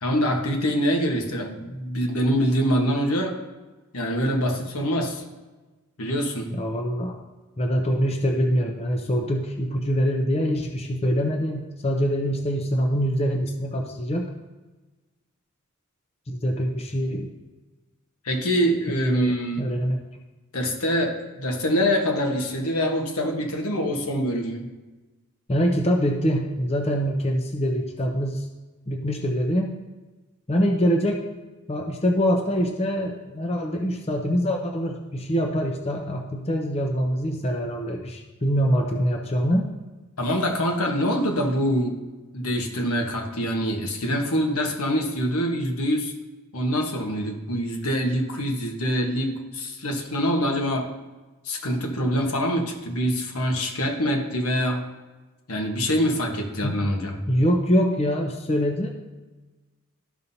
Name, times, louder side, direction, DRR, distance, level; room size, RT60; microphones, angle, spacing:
voice 1, 0.0-3.4 3.9-5.2 6.0-6.5 18.2-19.6 20.5-24.7 40.2-41.9 42.3-46.1 46.5-50.9 51.4-54.9 55.5-57.2, equal, 75° left, 2 dB, 1.2 m, -25 dB
voice 2, 6.5-7.2 7.6-14.3 16.3-17.3 19.1-20.0 25.5-28.5 28.9-29.7 30.5-31.2 31.7-39.7 56.6-56.7 57.3-58.9, equal, 30° left, 2 dB, 0.6 m, -24 dB
13.5 x 5.5 x 2.7 m, 1.2 s
head